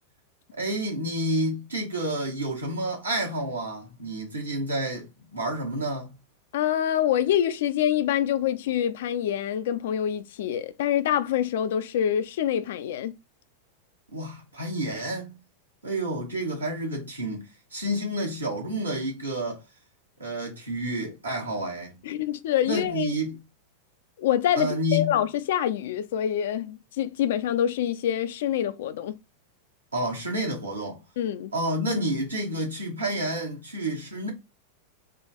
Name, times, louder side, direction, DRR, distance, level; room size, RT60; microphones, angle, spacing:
voice 1, 0.5-6.1 14.1-15.4 15.8-19.6 20.2-22.0 22.6-23.4 24.5-25.1 29.9-31.0 31.5-34.3, right 1 dB, 80° right, 1.7 m, -29 dB
voice 2, 6.5-13.1 22.0-23.2 24.2-29.2 31.2-31.5, left 10 dB, 55° left, 0.4 m, -26 dB
3.7 x 2.5 x 4.0 m
figure-of-eight pair, 90°, 0 cm